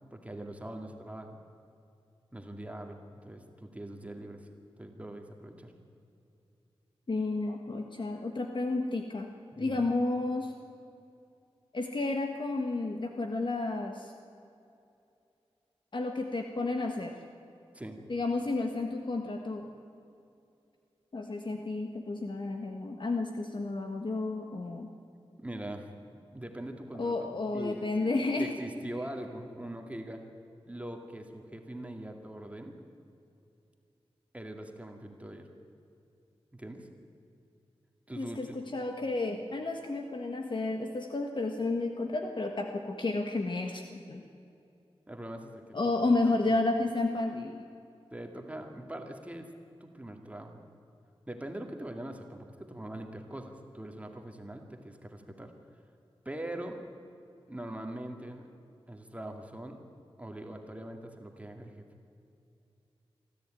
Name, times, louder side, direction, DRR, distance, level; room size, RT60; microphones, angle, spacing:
voice 1, 0.1-1.4 2.3-4.5 4.8-5.7 9.5-9.9 17.7-18.0 25.4-25.9 26.3-28.1 28.4-30.2 30.7-32.7 34.3-35.5 36.5-36.9 38.1-38.6 45.1-45.8 46.1-46.2 46.5-46.6 48.1-49.5 49.8-50.6 51.3-55.5 56.3-56.8 57.5-58.5 58.9-59.8 60.2-61.9, right 1 dB, 15° right, 4 dB, 2.2 m, -42 dB
voice 2, 7.1-9.3 9.6-10.5 11.7-14.1 15.9-17.1 18.1-19.7 21.1-24.9 27.0-28.5 38.2-44.2 45.7-47.6, left 2 dB, 50° left, 4 dB, 1.6 m, -31 dB
24.5 x 14.0 x 9.2 m, 2.6 s
wide cardioid pair, 80°, 10 cm